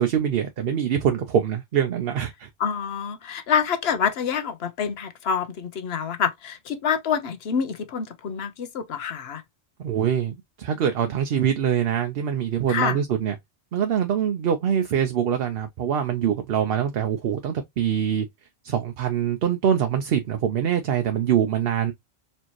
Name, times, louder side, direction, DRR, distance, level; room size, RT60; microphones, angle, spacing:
voice 1, 0.0-2.5 9.8-13.4 13.7-18.3 18.6-21.9, right 9 dB, 60° right, 0.8 m, -24 dB
voice 2, 2.6-9.4 12.7-13.0, left 7 dB, 65° left, 1.0 m, -27 dB
4.3 x 2.8 x 3.0 m
omnidirectional pair, 1.2 m